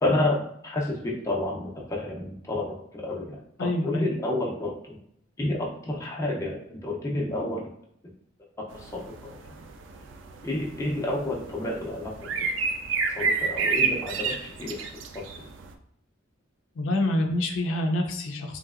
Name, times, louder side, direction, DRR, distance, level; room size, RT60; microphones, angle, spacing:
voice 1, 0.0-5.0 5.4-7.7 8.7-9.6 10.4-12.5 13.1-15.4, left 1 dB, 15° left, -2 dB, 0.5 m, -30 dB
voice 2, 3.6-4.1 16.8-18.6, left 1 dB, 80° left, 3 dB, 0.4 m, -26 dB
sound 1, 8.7-15.7, right 5 dB, 65° right, 0.3 m, -30 dB
3.2 x 2.7 x 2.4 m, 0.73 s
head